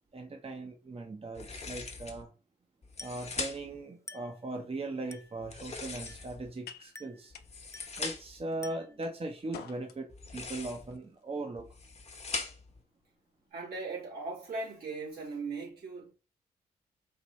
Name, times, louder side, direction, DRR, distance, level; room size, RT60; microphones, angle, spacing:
voice 1, 0.1-2.3 3.0-7.3 8.0-11.7, right 2 dB, 35° right, 1.0 m, -39 dB
sound 1, 1.3-2.2 2.8-3.8 5.4-6.5 7.3-8.4 10.1-11.0 11.6-12.8, left 4 dB, 40° left, 1.1 m, -41 dB
Glass, 3.0-3.3 4.1-4.4 5.1-5.4 6.1-6.4 6.9-7.3 7.7-8.1 8.6-9.0, left 2 dB, 20° left, 0.6 m, -49 dB
sound 2, 5.1-13.5, left 8 dB, 80° left, 0.5 m, -55 dB
voice 2, 13.5-16.1, right 3 dB, 75° right, 2.5 m, -38 dB
4.7 x 2.6 x 3.2 m
supercardioid pair, 40°, 16 cm